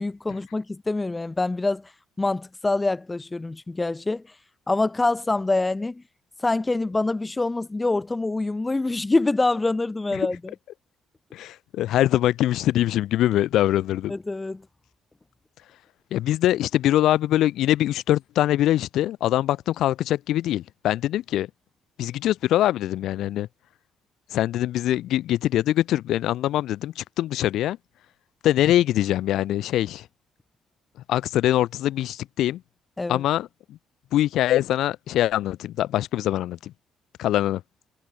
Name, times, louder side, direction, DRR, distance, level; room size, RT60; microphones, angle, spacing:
voice 1, 0.0-1.9 2.2-4.2 4.7-6.0 6.4-10.5 14.1-14.6 33.0-33.2, left 2 dB, 20° left, 1.9 m, -25 dB
voice 2, 11.3-14.1 16.1-21.5 22.0-23.5 24.3-27.8 28.4-30.0 31.1-32.6 33.1-33.8 34.1-36.7 37.2-37.6, left 13 dB, 80° left, 6.4 m, -23 dB
cardioid pair, 75°, 0 cm